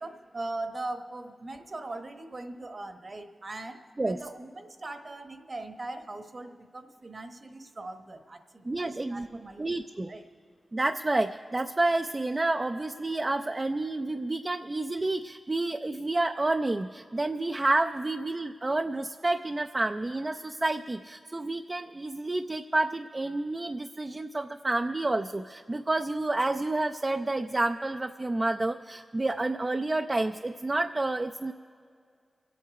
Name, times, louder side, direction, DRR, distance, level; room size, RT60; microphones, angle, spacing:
voice 1, 0.0-9.7 10.1-10.2, right 2 dB, 50° right, 7 dB, 1.1 m, -40 dB
voice 2, 8.6-10.1 10.7-31.5, right 2 dB, 35° right, 6 dB, 0.4 m, -29 dB
24.5 x 8.5 x 4.8 m, 2.2 s
cardioid pair, 55°, 0 cm